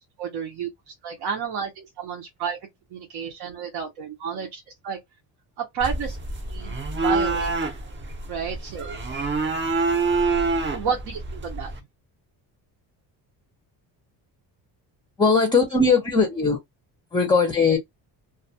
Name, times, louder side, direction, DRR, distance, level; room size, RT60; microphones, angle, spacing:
voice 1, 0.2-2.6 2.9-5.0 5.6-6.2 6.5-6.8 7.0-7.8 8.3-9.0 10.5-11.7, right 6 dB, 65° right, 0.8 m, -31 dB
sound 1, 5.8-11.8, right 3 dB, 30° right, 0.6 m, -26 dB
voice 2, 15.2-16.6 17.1-17.8, left 4 dB, 10° left, 0.5 m, -19 dB
2.4 x 2.2 x 2.6 m
cardioid pair, 120°, 42 cm